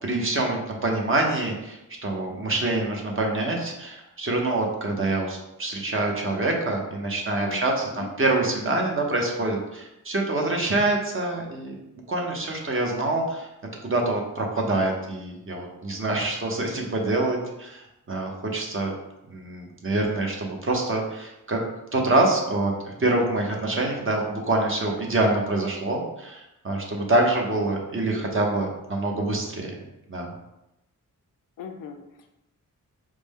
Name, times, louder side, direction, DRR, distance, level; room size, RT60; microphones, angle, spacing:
voice 1, 0.0-11.7 12.1-13.5 13.8-18.9 19.3-21.6 21.9-29.7 30.1-30.3, right 2 dB, 40° right, 0 dB, 0.9 m, -26 dB
voice 2, 7.4-8.1 31.6-32.3, left 7 dB, 85° left, 5 dB, 0.5 m, -40 dB
4.9 x 2.1 x 3.5 m, 0.91 s
wide cardioid pair, 90°, 32 cm